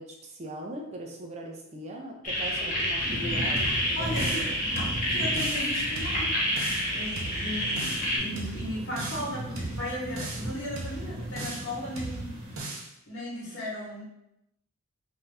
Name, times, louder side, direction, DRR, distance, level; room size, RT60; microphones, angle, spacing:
voice 1, 0.0-4.6, right 1 dB, 30° right, 1 dB, 0.5 m, -40 dB
sound 1, 2.2-8.2, equal, 40° left, 0.7 m, -29 dB
sound 2, 3.0-12.6, right 1 dB, 60° right, 1.1 m, -38 dB
sound 3, 3.6-4.5 4.8-5.7 6.0-6.9 7.2-8.1 8.4-9.3 9.6-10.5 10.8-11.7 12.0-12.9, right 2 dB, 85° right, 0.6 m, -37 dB
voice 2, 3.9-4.5 5.0-6.4 6.9-12.3 13.1-14.0, left 1 dB, 60° left, -7 dB, 1.2 m, -36 dB
2.7 x 2.3 x 3.3 m, 0.83 s
head